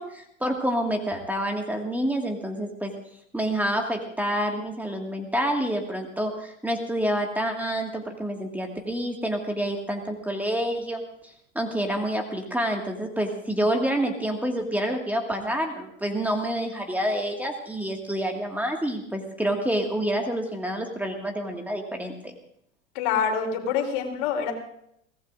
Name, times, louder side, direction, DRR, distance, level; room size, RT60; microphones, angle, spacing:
voice 1, 0.0-2.9 3.3-22.4, right 1 dB, 5° right, 2 dB, 1.9 m, -28 dB
voice 2, 23.0-24.5, left 7 dB, 55° left, 3 dB, 3.6 m, -26 dB
23.5 x 18.0 x 2.6 m, 0.72 s
hypercardioid pair, 90°, 37 cm